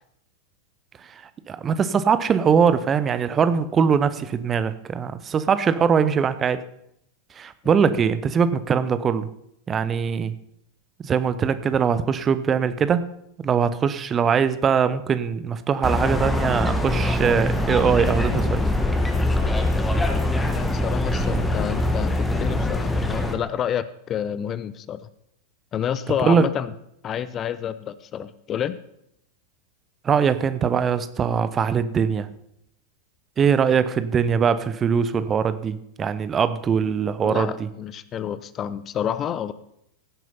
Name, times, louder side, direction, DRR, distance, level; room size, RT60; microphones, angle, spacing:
voice 1, 1.5-6.6 7.4-9.3 9.7-10.3 11.0-13.0 13.4-18.6 26.2-26.5 30.0-32.3 33.4-37.5, right 6 dB, 25° right, 13 dB, 0.8 m, -21 dB
sound 1, 15.8-23.3, left 1 dB, 10° left, 1.5 m, -23 dB
voice 2, 20.5-25.1 25.7-26.7 27.0-28.8 33.7-33.8 37.2-39.5, left 9 dB, 30° left, 15 dB, 0.6 m, -29 dB
16.5 x 7.6 x 5.5 m, 0.75 s
figure-of-eight pair, 90°, 0 cm